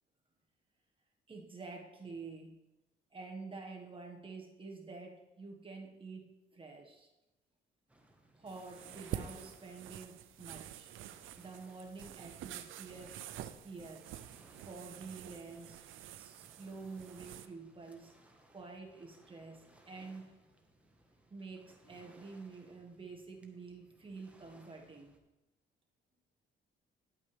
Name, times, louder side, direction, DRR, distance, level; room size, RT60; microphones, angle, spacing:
voice 1, 1.3-2.6 3.1-7.1 8.4-10.9 11.4-13.2 13.6-14.1 14.6-15.8 16.2-18.2 18.5-20.4 21.3-25.2, right 4 dB, 25° right, 1 dB, 1.5 m, -48 dB
Waves surf, 7.9-25.2, right 1 dB, 5° right, 1.3 m, -64 dB
sound 1, 8.5-17.5, right 11 dB, 85° right, 0.5 m, -48 dB
10.5 x 8.6 x 3.4 m, 0.96 s
cardioid pair, 90°, 20 cm